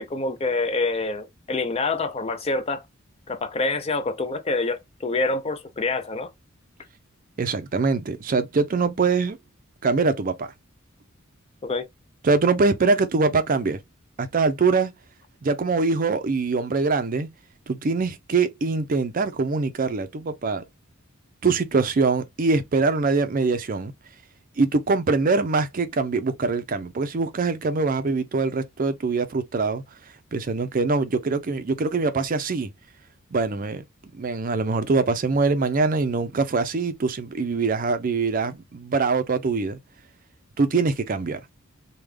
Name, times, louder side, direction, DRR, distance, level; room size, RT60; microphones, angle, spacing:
voice 1, 0.0-2.8 3.3-6.3 11.6-11.9, left 3 dB, 30° left, 0.5 m, -26 dB
voice 2, 7.4-9.4 9.8-10.5 12.2-13.8 14.2-14.9 15.4-17.3 17.7-20.6 21.4-23.9 24.6-29.8 30.3-32.7 33.3-33.8 34.1-39.8 40.6-41.4, right 4 dB, 40° right, 0.5 m, -23 dB
3.4 x 2.2 x 3.2 m
head